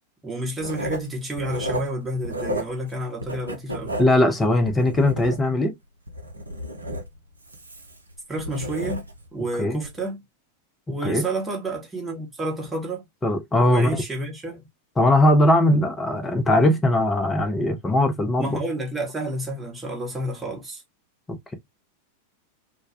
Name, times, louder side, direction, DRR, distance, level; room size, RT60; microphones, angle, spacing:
voice 1, 0.2-4.0 8.3-9.0 9.3-10.2 10.9-13.0 13.7-14.7 18.4-20.8, right 1 dB, 10° right, 0.9 m, -30 dB
Writing, 0.6-2.9 3.2-5.7 6.1-9.3 9.8-10.0, right 1 dB, 80° right, 0.4 m, -33 dB
voice 2, 4.0-5.7 9.6-9.8 11.0-11.3 13.2-14.0 15.0-18.6 21.3-21.5, left 1 dB, 15° left, 0.6 m, -20 dB
2.2 x 2.1 x 2.7 m
figure-of-eight pair, 90°, 0 cm